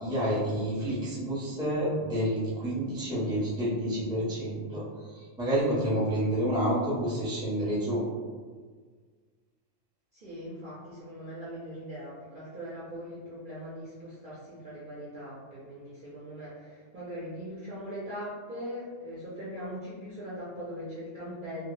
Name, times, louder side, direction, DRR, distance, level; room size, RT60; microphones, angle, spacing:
voice 1, 0.0-8.0, equal, 5° right, -8 dB, 0.5 m, -29 dB
voice 2, 10.1-21.7, equal, 55° right, -8 dB, 0.6 m, -40 dB
2.2 x 2.1 x 3.0 m, 1.6 s
omnidirectional pair, 1.3 m